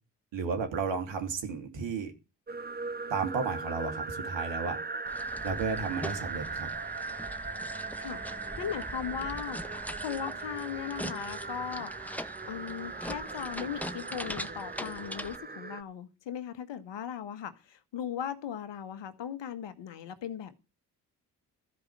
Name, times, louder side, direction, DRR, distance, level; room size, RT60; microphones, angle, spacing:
voice 1, 0.3-2.1 3.1-4.8 5.4-6.7, right 5 dB, 70° right, 2.8 m, -33 dB
sound 1, 2.5-15.8, right 4 dB, 20° right, 0.9 m, -39 dB
sound 2, 5.1-15.4, equal, 5° left, 1.3 m, -42 dB
voice 2, 8.6-20.5, left 9 dB, 65° left, 1.6 m, -38 dB
13.5 x 5.2 x 8.8 m
hypercardioid pair, 45°, 46 cm